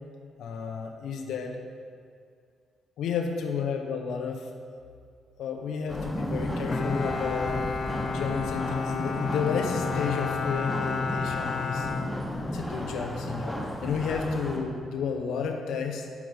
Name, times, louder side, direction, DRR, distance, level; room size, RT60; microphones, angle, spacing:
voice 1, 0.4-1.6 3.0-4.4 5.4-7.6 8.1-11.9 12.5-16.0, left 5 dB, 80° left, 3 dB, 1.0 m, -32 dB
sound 1, 5.9-14.6, equal, ahead, 1.4 m, -34 dB
Bowed string instrument, 6.7-12.8, left 5 dB, 50° left, 0.6 m, -31 dB
8.3 x 5.5 x 5.2 m, 2.2 s
cardioid pair, 90°, 0 cm